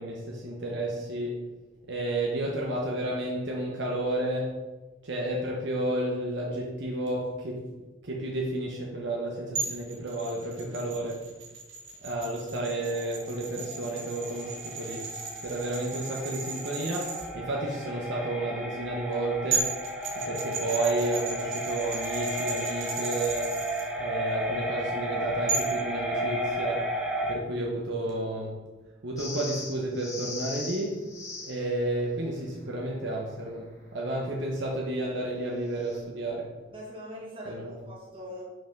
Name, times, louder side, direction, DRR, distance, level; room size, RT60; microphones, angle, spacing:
voice 1, 0.0-1.5 1.9-4.6 5.0-7.7 8.0-11.2 12.0-15.1 15.4-19.8 20.2-23.6 24.0-26.9 27.3-28.6 29.0-31.1 31.4-36.5 37.5-37.7, right 1 dB, 65° right, -2 dB, 1.0 m, -31 dB
sound 1, 9.5-17.2 19.1-19.2 19.5-23.8 25.5-25.8, right 4 dB, 80° right, 1.9 m, -35 dB
sound 2, 12.7-27.3, right 1 dB, 5° right, 0.9 m, -34 dB
sound 3, 29.2-31.7 35.7-36.0, left 3 dB, 20° left, 2.1 m, -39 dB
voice 2, 36.7-38.4, equal, 30° right, -4 dB, 2.2 m, -42 dB
5.7 x 5.6 x 5.2 m, 1.2 s
head